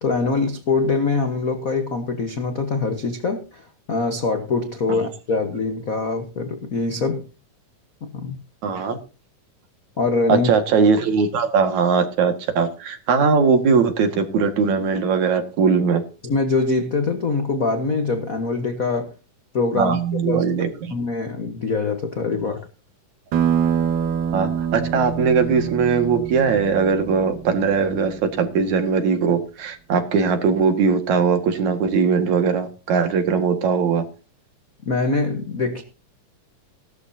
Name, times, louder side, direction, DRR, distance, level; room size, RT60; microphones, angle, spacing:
voice 1, 0.0-7.3 8.0-8.4 10.0-10.5 16.2-19.1 19.5-20.0 20.2-20.4 20.9-22.6 34.8-35.8, left 3 dB, 70° left, 7 dB, 0.8 m, -23 dB
voice 2, 8.6-9.0 10.3-16.0 19.8-20.9 24.3-34.0, right 5 dB, 65° right, 6 dB, 3.2 m, -20 dB
sound 1, 23.3-28.4, right 8 dB, 80° right, 3.1 m, -25 dB
17.0 x 12.5 x 2.8 m, 0.34 s
omnidirectional pair, 3.6 m